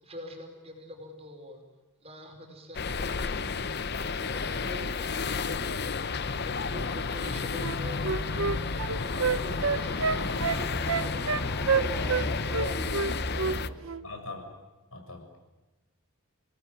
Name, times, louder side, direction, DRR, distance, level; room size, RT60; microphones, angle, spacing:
voice 1, 0.0-1.6 2.0-3.6 4.0-11.2 11.6-12.9 13.2-13.9, equal, 30° right, 3 dB, 4.9 m, -45 dB
sound 1, 2.7-13.7, left 4 dB, 50° left, 0.8 m, -32 dB
sound 2, 6.7-13.7, equal, 10° left, 3.1 m, -39 dB
Wind instrument woodwind instrument, 7.6-12.3 12.5-13.6 13.8-14.0, right 5 dB, 70° right, 0.8 m, -28 dB
voice 2, 14.0-14.5 14.9-15.5, left 3 dB, 70° left, 4 dB, 6.6 m, -42 dB
28.5 x 18.5 x 9.2 m, 1.2 s
head